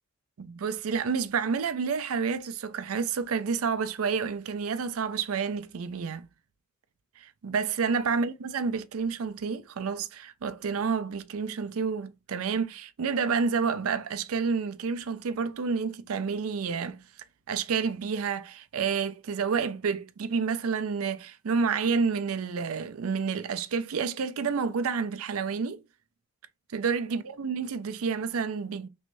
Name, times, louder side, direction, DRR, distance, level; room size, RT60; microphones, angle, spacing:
voice 1, 0.4-6.3 7.2-17.0 17.5-25.8 26.7-28.9, right 5 dB, 75° right, 0.5 m, -29 dB
3.1 x 2.6 x 3.0 m
head